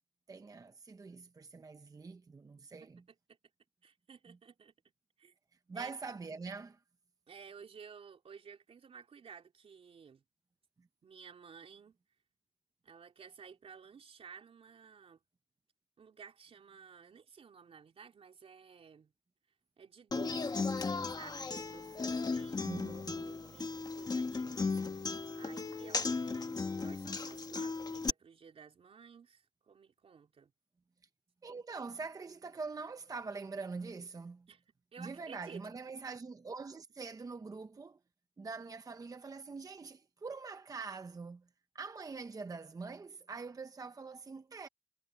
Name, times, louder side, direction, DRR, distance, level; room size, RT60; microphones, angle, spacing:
voice 1, 0.3-3.0 4.3-4.4 5.7-6.8 10.8-10.9 22.6-23.6 31.4-34.5 35.0-38.0 38.4-41.4 41.7-44.7, right 4 dB, 35° right, 0.7 m, -44 dB
voice 2, 2.7-3.4 3.8-4.7 5.2-5.3 5.7-5.9 7.3-10.2 11.0-12.0 12.8-15.2 16.0-19.1 19.8-22.8 23.5-30.5 34.5-35.7, right 6 dB, 75° right, 4.1 m, -54 dB
Human voice / Acoustic guitar, 20.1-28.1, left 4 dB, 40° left, 1.3 m, -36 dB
wide cardioid pair, 115°, 10 cm